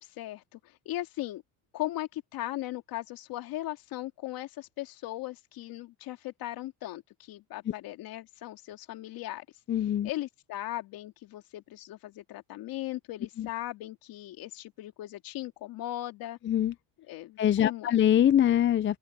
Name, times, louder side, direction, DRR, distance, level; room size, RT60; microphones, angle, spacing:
voice 1, 0.0-1.4 1.7-9.5 10.0-16.4 17.1-18.0, left 15 dB, 70° left, 2.6 m, -38 dB
voice 2, 9.7-10.1 13.4-13.5 16.4-16.7 17.4-19.0, left 10 dB, 30° left, 0.6 m, -23 dB
open air
supercardioid pair, 100°, 37 cm